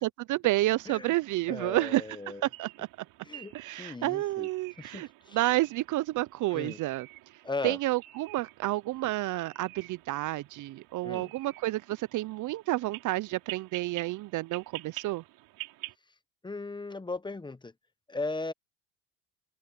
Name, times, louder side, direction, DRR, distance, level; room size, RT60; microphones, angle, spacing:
voice 1, 0.0-2.0 2.4-2.9 3.5-5.1 5.3-7.1 7.6-15.2, right 17 dB, 50° right, 0.6 m, -30 dB
sound 1, 0.7-16.0, right 17 dB, 70° right, 6.3 m, -48 dB
voice 2, 1.5-2.5 3.2-4.5 4.8-5.4 6.5-6.8 7.4-7.8 11.0-11.3 16.4-17.7 18.1-18.5, left 3 dB, 10° left, 1.1 m, -37 dB
open air
supercardioid pair, 95°, 38 cm